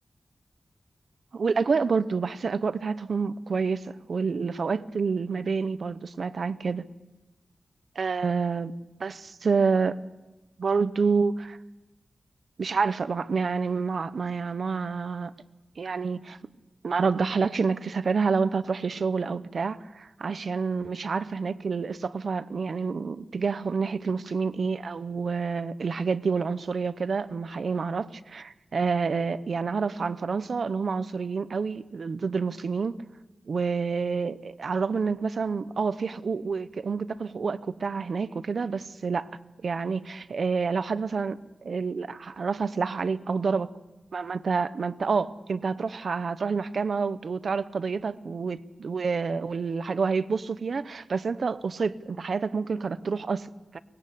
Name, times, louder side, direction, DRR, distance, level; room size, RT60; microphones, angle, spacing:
voice 1, 1.3-6.8 8.0-8.7 9.0-10.0 10.6-11.6 12.6-15.3 15.8-16.4 16.8-32.9 33.5-43.7 44.1-53.8, right 5 dB, 70° right, 0.9 m, -28 dB
23.5 x 20.5 x 8.4 m
wide cardioid pair, 120°, 0 cm